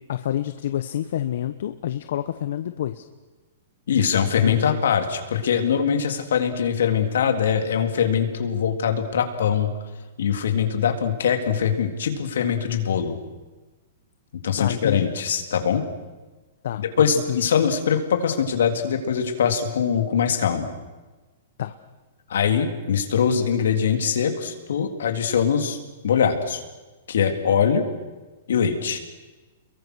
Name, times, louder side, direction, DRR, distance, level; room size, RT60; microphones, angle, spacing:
voice 1, 0.1-3.0 4.3-4.8 14.6-15.1 16.6-16.8 17.3-17.4 21.6-21.7, left 11 dB, 65° left, 10 dB, 1.1 m, -28 dB
voice 2, 3.9-9.7 10.2-13.2 14.4-15.8 17.0-20.7 22.3-25.8 26.0-26.6 27.1-27.9 28.5-29.0, left 7 dB, 80° left, 6 dB, 3.6 m, -22 dB
30.0 x 22.5 x 6.4 m, 1.2 s
hypercardioid pair, 160°, 0 cm